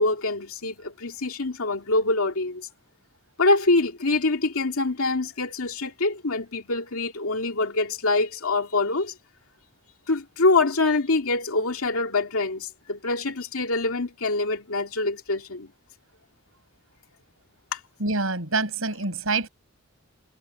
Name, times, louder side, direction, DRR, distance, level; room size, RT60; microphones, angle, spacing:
voice 1, 0.0-2.7 3.4-9.1 10.1-15.7 17.7-17.8, left 3 dB, 75° left, 2.4 m, -25 dB
voice 2, 18.0-19.5, right 3 dB, 70° right, 6.3 m, -26 dB
head